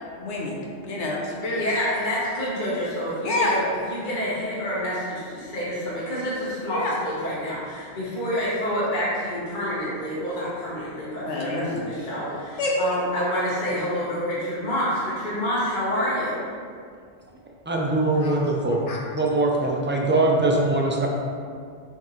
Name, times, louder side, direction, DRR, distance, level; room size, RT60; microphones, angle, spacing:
voice 1, 0.2-0.5 0.9-1.6 3.2-3.5 6.6-7.0 8.3-8.4 11.2-11.8 12.6-12.8 18.2-18.4 18.9-19.0, left 2 dB, 85° left, -3 dB, 1.2 m, -27 dB
voice 2, 1.5-3.6 3.9-16.4, equal, 45° left, -9 dB, 1.4 m, -28 dB
voice 3, 17.7-18.8 19.2-21.1, right 2 dB, 15° right, -1 dB, 0.5 m, -22 dB
7.0 x 4.4 x 3.1 m, 2.2 s
omnidirectional pair, 1.2 m